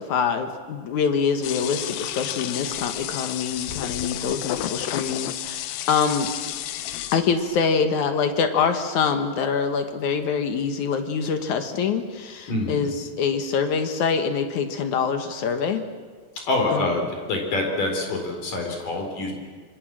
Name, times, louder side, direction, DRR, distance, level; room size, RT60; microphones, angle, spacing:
voice 1, 0.0-6.3 7.1-15.8 16.7-16.9, left 6 dB, 65° left, 7 dB, 2.0 m, -25 dB
sound 1, 1.4-7.5, left 13 dB, 80° left, 2.0 m, -31 dB
voice 2, 12.5-12.8 16.5-19.3, left 2 dB, 50° left, 2 dB, 5.4 m, -26 dB
26.5 x 23.5 x 7.6 m, 1.5 s
omnidirectional pair, 5.2 m